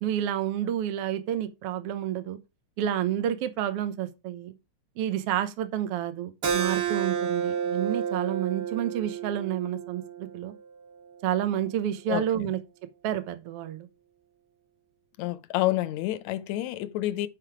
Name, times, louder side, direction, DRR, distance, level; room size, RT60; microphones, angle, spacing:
voice 1, 0.0-2.4 2.8-4.5 5.0-10.5 11.2-12.6 13.0-13.9, right 11 dB, 60° right, 1.8 m, -29 dB
Keyboard (musical), 6.4-11.6, right 7 dB, 45° right, 1.5 m, -31 dB
voice 2, 15.2-17.3, left 15 dB, 75° left, 1.9 m, -28 dB
11.0 x 5.4 x 4.8 m
omnidirectional pair, 3.4 m